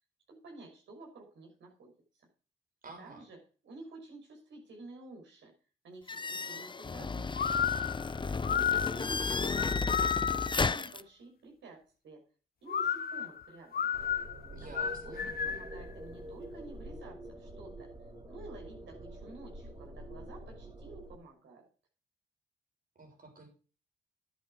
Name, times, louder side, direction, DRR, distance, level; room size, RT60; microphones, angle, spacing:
voice 1, 0.3-2.3 3.0-3.4 3.6-5.5 5.8-8.4 8.7-12.2 12.6-13.9 14.6-15.1 15.4-17.9 18.2-21.7, right 2 dB, 75° right, 0 dB, 5.8 m, -51 dB
voice 2, 2.8-3.2 14.5-15.3 23.0-23.5, right 3 dB, 45° right, 2 dB, 6.6 m, -49 dB
sound 1, 6.1-11.0, left 4 dB, 25° left, 0.6 m, -33 dB
sound 2, 7.3-10.7 12.7-15.8, left 8 dB, 50° left, 0.9 m, -32 dB
sound 3, 13.9-21.2, right 1 dB, 20° right, 2.8 m, -46 dB
10.5 x 9.2 x 4.9 m, 0.37 s
cardioid pair, 60°, 19 cm